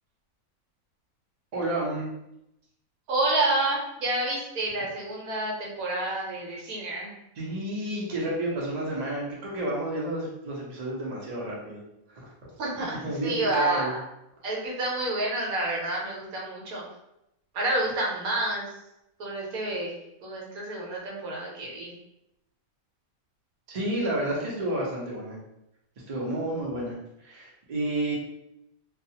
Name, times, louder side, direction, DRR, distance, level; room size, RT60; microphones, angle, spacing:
voice 1, 1.5-2.1 7.4-11.8 12.1-12.2 13.0-13.9 23.7-25.4 26.1-27.0 27.2-28.1, right 1 dB, 40° right, -4 dB, 0.6 m, -30 dB
voice 2, 3.1-7.1 12.6-13.0 13.2-14.0 14.4-16.8 17.5-18.7 19.2-19.9 20.2-21.9, right 2 dB, 80° right, -2 dB, 1.2 m, -29 dB
2.4 x 2.3 x 2.7 m, 0.84 s
omnidirectional pair, 1.5 m